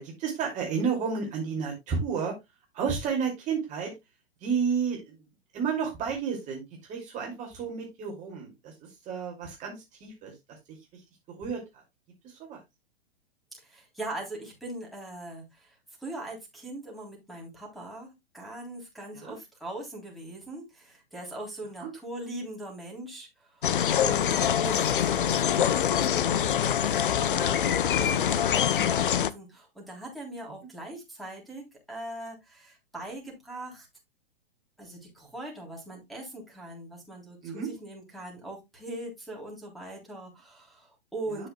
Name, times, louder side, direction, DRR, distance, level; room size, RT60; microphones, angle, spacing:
voice 1, 0.0-2.3 2.7-3.9 4.4-5.2 5.5-6.6 6.9-11.0 11.3-11.6 12.2-12.6 19.1-19.3 21.8-21.9 24.3-24.4 37.4-37.7 41.3-41.5, right 6 dB, 25° right, -1 dB, 2.5 m, -32 dB
voice 2, 13.6-33.9 34.8-41.5, right 1 dB, ahead, -3 dB, 3.4 m, -41 dB
sound 1, 23.6-29.3, left 9 dB, 55° left, 0.7 m, -24 dB
11.5 x 6.6 x 2.3 m, 0.21 s
figure-of-eight pair, 110°, 30 cm